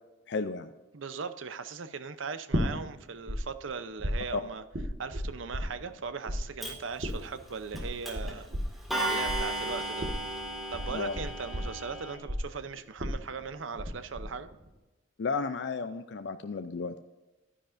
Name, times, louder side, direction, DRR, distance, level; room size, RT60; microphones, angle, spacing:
voice 1, 0.3-0.7 4.3-4.4 10.9-11.2 15.2-17.0, left 4 dB, 60° left, 9 dB, 0.5 m, -33 dB
voice 2, 0.9-4.6 5.0-8.5 9.0-10.1 10.7-14.5, right 5 dB, 80° right, 11 dB, 0.7 m, -39 dB
sound 1, 2.5-3.4 3.6-6.0 6.3-13.9 14.2-14.7, equal, 60° right, 1.6 m, -34 dB
Clock, 6.6-6.7 7.8-7.9 8.1-8.3 8.9-12.2, right 1 dB, ahead, 1.9 m, -34 dB
11.5 x 10.0 x 2.6 m, 1.1 s
head